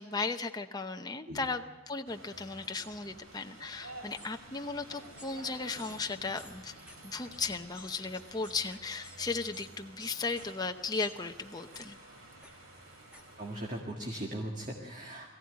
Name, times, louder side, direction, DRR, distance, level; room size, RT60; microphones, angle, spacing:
voice 1, 0.0-6.7 7.0-12.0, left 4 dB, 20° left, 5 dB, 0.7 m, -36 dB
sound 1, 2.0-13.8, right 2 dB, 70° right, 4.9 m, -51 dB
sound 2, 2.7-2.9 4.2-4.3 5.2-5.3 5.8-5.9 6.4-6.5 6.9-7.0 7.3-7.4 7.7-9.2 9.5-9.7 10.0-10.5 11.0-11.2 11.7-11.9 12.4-12.5 13.1-13.2, left 1 dB, 5° right, 2.1 m, -52 dB
voice 2, 13.4-15.3, right 1 dB, 35° right, 0 dB, 1.9 m, -39 dB
21.5 x 15.5 x 9.6 m, 1.2 s
head